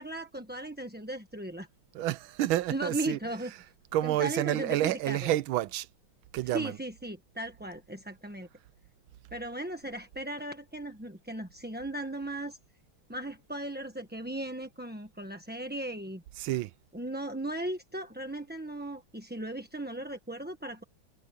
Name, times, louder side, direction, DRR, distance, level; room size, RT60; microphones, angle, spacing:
voice 1, 0.0-1.7 2.7-3.5 4.0-5.3 6.4-8.5 9.3-12.6 13.1-16.2 16.9-20.8, right 1 dB, 5° right, 0.9 m, -37 dB
voice 2, 1.9-3.6 3.9-5.9 6.3-6.8 16.4-16.7, right 14 dB, 80° right, 1.5 m, -29 dB
omnidirectional pair, 2.2 m